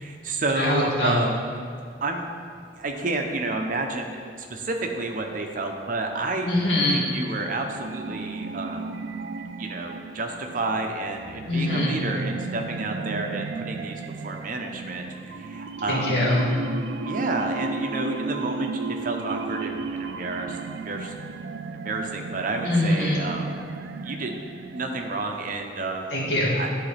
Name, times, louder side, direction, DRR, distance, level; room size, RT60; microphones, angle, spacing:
voice 1, 0.0-1.4 2.0-2.3 2.8-6.5 6.9-8.9 9.6-16.2 17.0-20.6 20.9-21.2 21.8-23.6 24.0-24.4 24.7-26.1 26.5-26.7, right 2 dB, 50° right, 3 dB, 0.7 m, -30 dB
voice 2, 0.5-1.2 6.4-7.0 11.5-12.0 15.9-16.5 22.7-23.2 26.1-26.7, left 1 dB, 90° left, -4 dB, 1.7 m, -23 dB
sound 1, 7.4-25.3, right 4 dB, 90° right, 0.3 m, -34 dB
11.5 x 4.0 x 3.3 m, 2.2 s
head